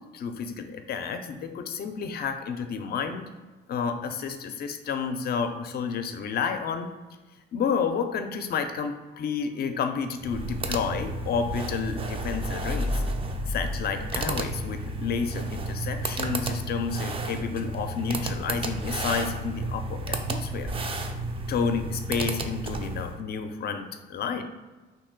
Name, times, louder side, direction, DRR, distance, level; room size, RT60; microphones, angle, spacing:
voice 1, 0.0-3.3 3.7-6.9 7.5-13.0 13.5-20.7 21.5-24.4, left 6 dB, 50° left, 7 dB, 0.4 m, -30 dB
sound 1, 10.2-23.2, right 2 dB, 30° right, 0.4 m, -32 dB
sound 2, 12.2-15.0, left 2 dB, 60° right, 0.7 m, -33 dB
2.7 x 2.6 x 3.7 m, 1.2 s
cardioid pair, 90°, 20 cm